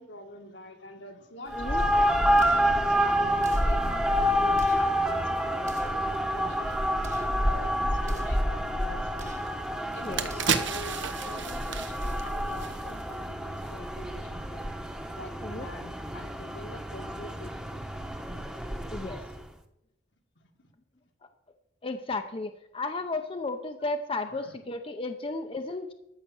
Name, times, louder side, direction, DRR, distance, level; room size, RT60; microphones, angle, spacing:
voice 1, 0.0-9.4 9.9-14.7 15.2-17.8 20.4-20.7 24.2-24.5, left 1 dB, 80° left, 3 dB, 2.0 m, -45 dB
sound 1, 1.5-19.4, equal, 5° right, 1.0 m, -28 dB
sound 2, 2.4-2.7 3.4-3.8 4.5-4.9 5.6-6.0 7.0-7.4 8.0-8.4 9.1-9.5 10.2-10.7, right 2 dB, 40° right, 1.3 m, -46 dB
sound 3, 9.5-9.6 9.9-13.2 13.5-13.7, right 6 dB, 90° right, 1.0 m, -32 dB
voice 2, 18.9-19.2 21.2-21.3 21.8-25.9, left 3 dB, 30° left, 6 dB, 0.7 m, -34 dB
13.5 x 5.9 x 7.6 m, 0.85 s
head